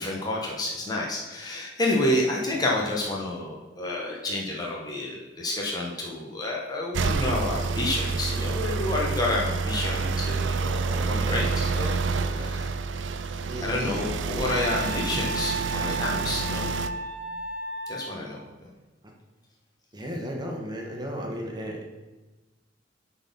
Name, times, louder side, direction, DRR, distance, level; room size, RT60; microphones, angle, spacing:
voice 1, 0.0-12.0 12.3-12.7 13.6-16.7 17.9-18.4, left 1 dB, 20° left, -3 dB, 1.1 m, -29 dB
voice 2, 2.3-2.9 10.7-11.4 12.0-12.5 13.5-14.0 19.9-21.9, equal, 25° right, 1 dB, 1.3 m, -36 dB
sound 1, 6.9-16.9, right 4 dB, 90° right, 0.5 m, -28 dB
Wind instrument woodwind instrument, 14.5-18.2, right 2 dB, 60° right, 1.5 m, -33 dB
9.7 x 4.2 x 5.4 m, 1.2 s
head